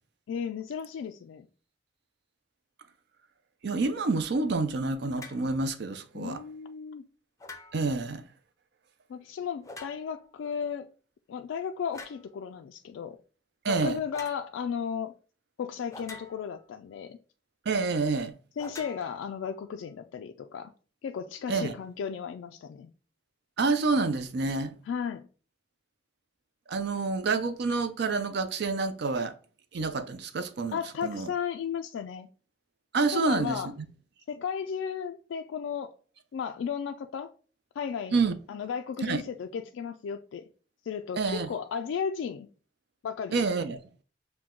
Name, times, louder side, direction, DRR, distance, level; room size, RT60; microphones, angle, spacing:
voice 1, 0.3-1.5 6.1-7.1 9.1-10.9 11.3-13.2 13.6-15.1 15.6-17.2 18.6-20.7 21.0-22.9 24.9-25.3 30.7-32.3 33.1-33.7 34.3-35.9 36.3-37.3 37.8-38.2 38.5-40.5 40.8-42.5 43.0-43.4, left 7 dB, 90° left, 0.3 m, -34 dB
voice 2, 3.6-6.4 7.7-8.2 13.6-14.0 17.7-18.3 21.5-21.7 23.6-24.7 26.7-29.3 29.7-31.3 32.9-33.6 38.1-38.4 39.0-39.2 41.2-41.5 43.3-43.8, right 4 dB, 60° right, 0.5 m, -28 dB
sound 1, 5.1-5.5 7.4-8.0 9.6-10.3 11.9-12.3 14.1-14.4 15.9-16.7 18.6-19.7, left 2 dB, 15° left, 0.5 m, -46 dB
6.0 x 2.2 x 3.6 m
head